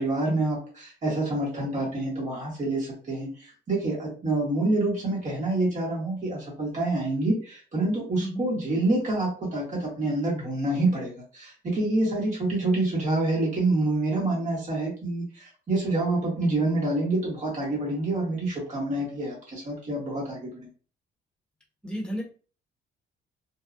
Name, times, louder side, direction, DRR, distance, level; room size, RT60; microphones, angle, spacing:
voice 1, 0.0-20.7, right 2 dB, 40° right, -4 dB, 1.3 m, -27 dB
voice 2, 21.8-22.2, equal, 5° left, -1 dB, 1.2 m, -32 dB
2.8 x 2.3 x 2.5 m, 0.37 s
cardioid pair, 90°, 20 cm